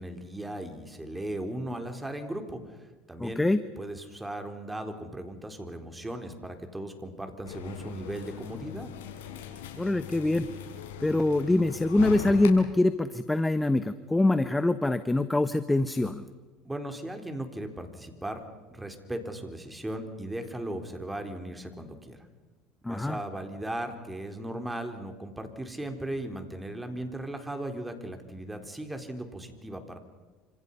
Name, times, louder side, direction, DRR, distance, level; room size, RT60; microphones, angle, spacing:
voice 1, 0.0-2.8 3.1-3.4 3.8-8.9 16.6-18.4 18.7-22.3 22.9-30.0, right 1 dB, 10° right, 6 dB, 4.1 m, -37 dB
voice 2, 3.2-3.6 9.8-10.5 11.0-16.2 22.8-23.2, left 2 dB, 10° left, 12 dB, 1.1 m, -24 dB
sound 1, 7.4-12.5, left 8 dB, 85° left, 5.4 m, -40 dB
28.5 x 27.0 x 5.7 m, 1.3 s
hypercardioid pair, 90°, 0 cm